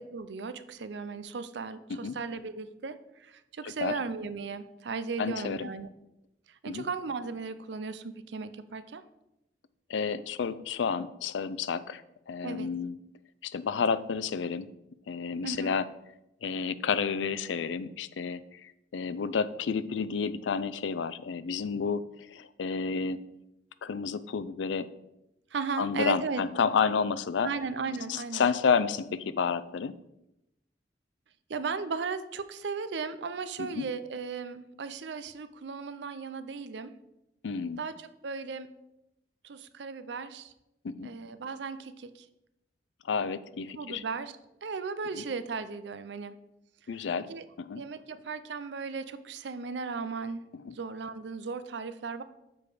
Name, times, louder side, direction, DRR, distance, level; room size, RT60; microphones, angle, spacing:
voice 1, 0.0-5.9 6.5-9.0 12.4-12.7 15.4-15.7 25.5-26.4 27.4-28.5 31.5-37.0 37.8-38.7 39.4-40.5 41.0-42.3 43.8-46.4 47.3-47.5 47.8-50.5 50.7-52.2, right 4 dB, 70° right, 12 dB, 0.5 m, -36 dB
voice 2, 3.6-4.0 5.2-5.7 6.7-6.9 9.9-12.9 13.4-14.7 15.1-15.8 16.4-23.2 23.8-24.9 25.8-27.5 28.1-29.9 33.6-33.9 37.4-37.8 40.8-41.1 43.1-44.0 45.1-45.2 46.9-47.3 47.6-47.8 50.6-50.7, left 5 dB, 85° left, 16 dB, 0.4 m, -30 dB
7.1 x 4.8 x 4.9 m, 0.88 s
head